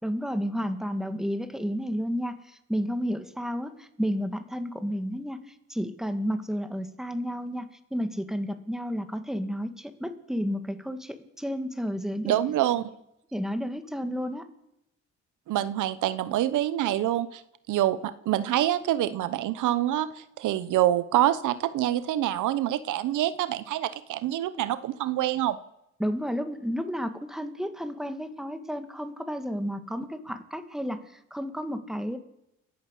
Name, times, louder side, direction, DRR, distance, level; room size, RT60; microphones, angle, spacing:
voice 1, 0.0-12.4 13.3-14.5 26.0-32.2, equal, ahead, 8 dB, 2.2 m, -32 dB
voice 2, 12.3-12.8 15.5-17.4 17.7-25.6, right 13 dB, 80° right, 14 dB, 1.0 m, -26 dB
29.0 x 11.5 x 8.4 m, 0.83 s
cardioid pair, 90°, 30 cm